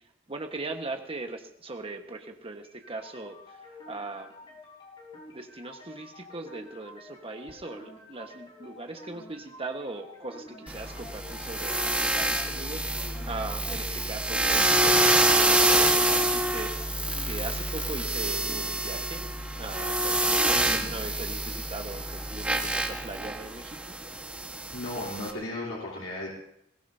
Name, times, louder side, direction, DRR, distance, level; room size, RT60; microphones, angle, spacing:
voice 1, 0.3-4.5 5.3-15.0 15.3-16.8 17.2-19.3 19.6-23.9, right 2 dB, 30° right, 4 dB, 1.4 m, -39 dB
sound 1, 2.6-18.6, left 2 dB, 25° left, 4.2 m, -50 dB
sound 2, 10.7-25.3, right 1 dB, 5° right, 1.4 m, -26 dB
voice 2, 20.5-20.9 24.7-26.3, left 1 dB, 85° left, -7 dB, 3.6 m, -35 dB
21.5 x 18.0 x 2.8 m, 0.75 s
head